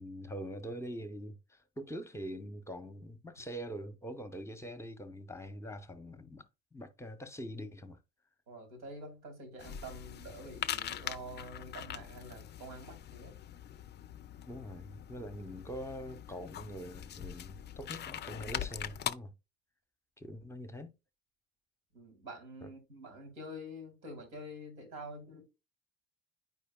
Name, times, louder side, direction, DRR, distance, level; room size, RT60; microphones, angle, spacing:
voice 1, 0.0-8.0 14.5-19.3 20.2-20.9 22.6-22.7, equal, 5° left, 0.8 m, -44 dB
voice 2, 8.5-13.4 21.9-25.4, equal, 85° right, 2.0 m, -47 dB
sound 1, 9.6-19.1, left 10 dB, 25° left, 0.4 m, -42 dB
9.5 x 4.9 x 2.2 m
hypercardioid pair, 50°, 41 cm